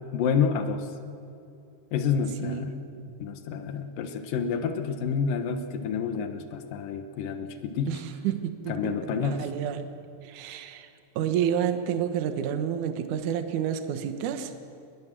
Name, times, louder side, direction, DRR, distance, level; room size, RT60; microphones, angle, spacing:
voice 1, 0.1-0.8 1.9-2.7 3.2-7.9 8.7-9.4, left 6 dB, 70° left, 7 dB, 2.2 m, -28 dB
voice 2, 7.9-9.9 10.2-10.9 11.2-14.5, right 9 dB, 70° right, 8 dB, 1.9 m, -30 dB
23.5 x 21.5 x 7.5 m, 2.6 s
omnidirectional pair, 5.4 m